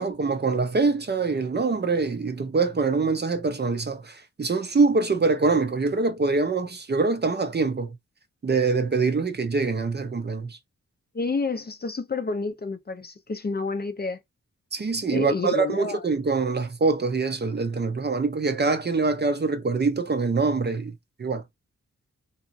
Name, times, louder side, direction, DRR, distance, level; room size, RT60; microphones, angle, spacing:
voice 1, 0.0-8.0 8.4-10.6 14.7-21.4, right 4 dB, 35° right, 0.5 m, -24 dB
voice 2, 11.1-14.2 15.1-16.0, left 3 dB, 30° left, 0.5 m, -29 dB
2.9 x 2.3 x 2.5 m
wide cardioid pair, 80°, 30 cm